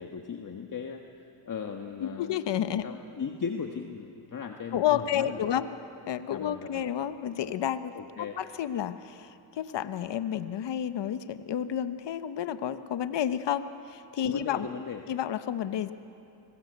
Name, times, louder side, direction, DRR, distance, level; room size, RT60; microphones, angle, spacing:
voice 1, 0.0-2.4 2.7-5.6 6.3-6.8 7.9-8.4 14.2-15.0, left 6 dB, 40° left, 4 dB, 1.6 m, -37 dB
voice 2, 2.0-2.9 4.7-5.7 6.1-14.7 15.1-15.9, left 10 dB, 55° left, 11 dB, 1.2 m, -31 dB
25.5 x 20.5 x 8.1 m, 2.6 s
supercardioid pair, 70°, 50 cm